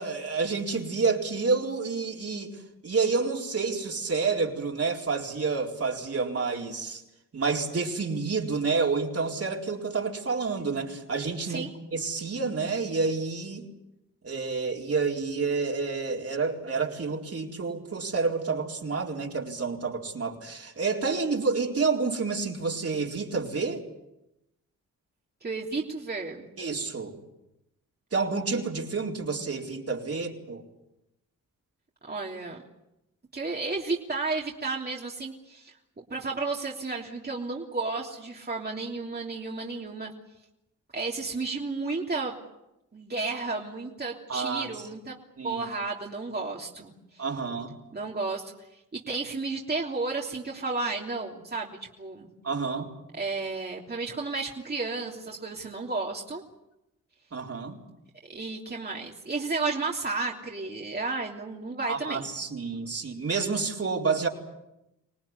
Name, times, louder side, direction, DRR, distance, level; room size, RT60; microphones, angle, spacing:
voice 1, 0.0-2.5 2.8-7.0 7.3-11.7 11.9-13.7 14.2-23.8 26.6-27.1 28.1-30.6 44.3-44.7 45.4-45.6 47.2-47.8 52.4-52.9 57.3-57.8 61.9-64.3, right 4 dB, 45° right, 1 dB, 4.3 m, -29 dB
voice 2, 25.4-26.5 32.0-32.6 33.3-40.1 40.9-42.4 42.9-45.2 45.4-47.2 47.9-48.5 48.9-52.3 53.1-56.4 58.3-62.3, right 3 dB, 30° right, -2 dB, 3.2 m, -32 dB
26.0 x 18.5 x 9.7 m, 0.91 s
cardioid pair, 60°, 32 cm